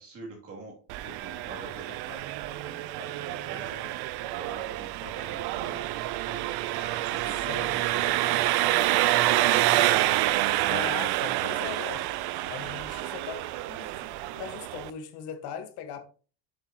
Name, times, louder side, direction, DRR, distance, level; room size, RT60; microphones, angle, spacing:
voice 1, 0.0-9.8, right 2 dB, 35° right, 2.6 m, -44 dB
Engine, 0.9-14.9, right 16 dB, 65° right, 0.6 m, -28 dB
voice 2, 10.6-16.0, left 8 dB, 65° left, 1.4 m, -39 dB
7.6 x 6.9 x 2.9 m
cardioid pair, 160°, 42 cm